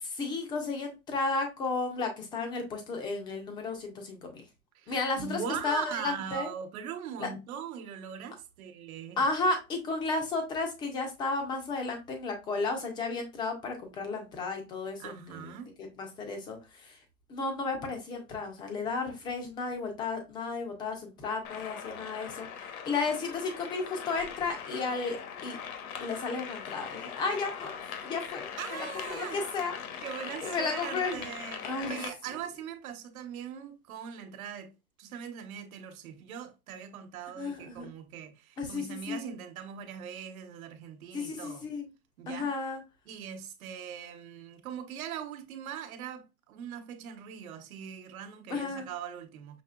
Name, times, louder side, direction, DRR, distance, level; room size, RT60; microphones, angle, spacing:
voice 1, 0.0-4.4 4.9-6.5 7.2-7.3 9.2-15.5 15.8-17.0 17.3-25.6 26.0-27.8 28.0-29.8 30.4-31.3 31.6-32.0 37.4-37.9 38.6-39.4 41.1-41.9 42.3-42.8 48.5-48.9, left 3 dB, 10° left, 0.4 m, -33 dB
voice 2, 4.7-9.2 15.0-15.7 28.6-29.4 30.0-34.7 35.0-41.7 42.2-42.5 43.1-49.6, right 8 dB, 75° right, 1.0 m, -41 dB
sound 1, 21.4-32.1, left 7 dB, 75° left, 1.1 m, -41 dB
5.7 x 2.9 x 2.3 m
supercardioid pair, 150°, 43 cm